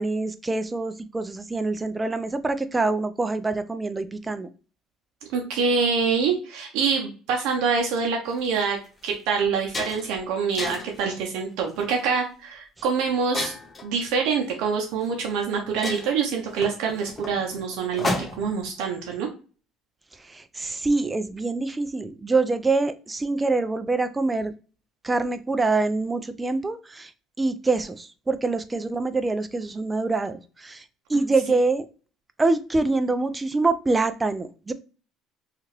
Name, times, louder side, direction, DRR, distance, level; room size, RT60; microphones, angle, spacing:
voice 1, 0.0-4.5 20.3-24.5 25.0-27.1 27.4-30.8 31.1-31.9 32.4-34.7, right 3 dB, 15° right, 11 dB, 0.3 m, -25 dB
voice 2, 5.3-13.5 13.8-19.3, right 5 dB, 80° right, 1 dB, 0.6 m, -25 dB
sound 1, 8.3-8.5 9.0-9.1 9.4-10.2 10.6-11.0 11.7-12.0 13.3-13.9 15.0-15.1 15.4-15.5 15.8-18.6, left 2 dB, 20° left, 0.7 m, -32 dB
2.8 x 2.4 x 3.0 m, 0.36 s
cardioid pair, 105°, 0 cm